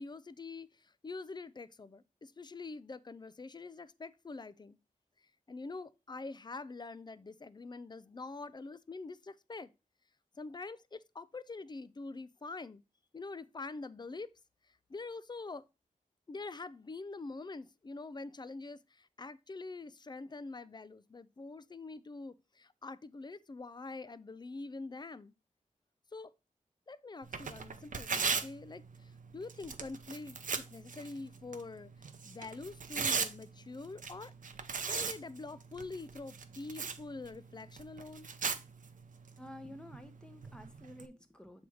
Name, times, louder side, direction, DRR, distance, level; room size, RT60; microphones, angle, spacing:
voice 1, 0.0-4.8 5.5-9.7 10.4-12.8 13.1-14.3 14.7-15.6 16.3-25.3 26.1-26.3 26.9-34.3 34.9-38.3, left 3 dB, 30° left, 0.5 m, -45 dB
Tearing, 27.2-41.1, right 5 dB, 70° right, 0.7 m, -40 dB
voice 2, 39.4-41.7, left 1 dB, 5° left, 1.0 m, -51 dB
7.6 x 3.4 x 4.7 m
wide cardioid pair, 85°, 14 cm